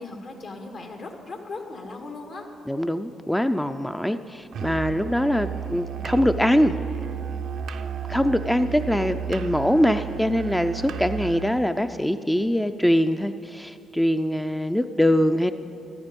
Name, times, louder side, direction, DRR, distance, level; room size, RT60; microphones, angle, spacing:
voice 1, 0.0-2.5, left 3 dB, 65° left, 3 dB, 2.0 m, -37 dB
voice 2, 2.7-6.7 8.1-15.5, equal, 5° left, 9 dB, 0.4 m, -23 dB
Musical instrument, 4.5-11.7, right 8 dB, 75° right, 0.6 m, -33 dB
14.0 x 13.0 x 5.3 m, 2.7 s
supercardioid pair, 65°, 0 cm